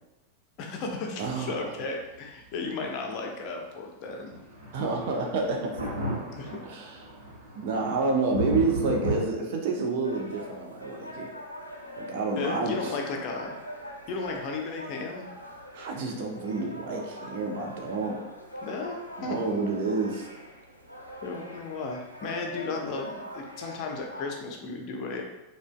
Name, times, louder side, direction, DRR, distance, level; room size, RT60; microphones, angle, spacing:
voice 1, 0.6-4.3 6.3-6.6 12.4-13.6 14.1-15.3 18.6-19.4 21.2-25.2, left 3 dB, 40° left, 1 dB, 0.5 m, -34 dB
voice 2, 1.2-1.5 4.7-5.7 6.6-7.0 7.6-11.3 12.0-12.9 15.7-18.2 19.2-20.3, right 3 dB, 50° right, 1 dB, 0.6 m, -29 dB
sound 1, 4.3-9.2, equal, 70° right, 1.0 m, -34 dB
sound 2, 10.0-24.2, equal, 90° left, 0.5 m, -43 dB
4.9 x 2.2 x 2.2 m, 1.0 s
figure-of-eight pair, 90°, 0 cm